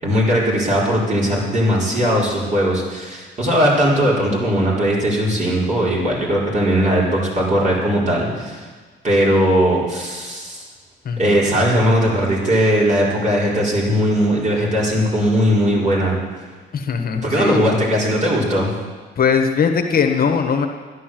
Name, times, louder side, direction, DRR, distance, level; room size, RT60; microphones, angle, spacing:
voice 1, 0.0-8.7 9.0-10.6 11.2-16.2 17.2-18.7, equal, 35° right, -4 dB, 4.7 m, -18 dB
voice 2, 11.0-11.4 16.7-17.8 19.2-20.7, left 6 dB, 50° left, 4 dB, 1.3 m, -20 dB
11.5 x 11.0 x 7.7 m, 1.4 s
cardioid pair, 90°, 20 cm